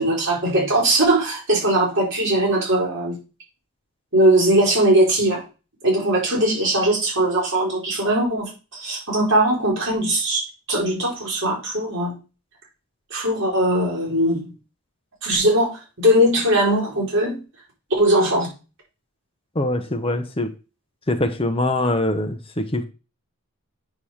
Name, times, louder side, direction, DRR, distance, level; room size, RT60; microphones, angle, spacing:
voice 1, 0.0-3.2 4.1-5.4 5.8-10.4 10.7-12.1 13.1-14.5 15.2-17.4 18.0-18.5, right 1 dB, 55° right, 4.7 m, -20 dB
voice 2, 19.5-20.5 21.1-22.8, left 1 dB, 25° left, 1.0 m, -23 dB
8.6 x 3.8 x 6.4 m
head